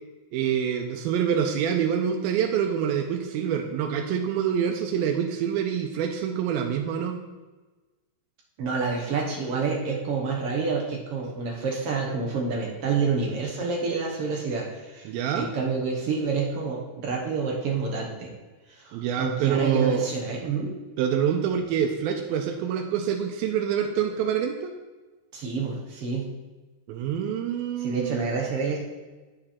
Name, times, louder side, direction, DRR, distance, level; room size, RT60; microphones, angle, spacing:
voice 1, 0.3-7.2 15.1-15.5 18.9-20.1 21.0-24.7 26.9-28.4, right 8 dB, 90° right, 3 dB, 2.5 m, -26 dB
voice 2, 8.6-18.3 18.7-20.7 25.3-26.3 27.8-28.8, right 4 dB, 65° right, -1 dB, 1.5 m, -28 dB
8.9 x 7.6 x 4.3 m, 1.2 s
omnidirectional pair, 4.2 m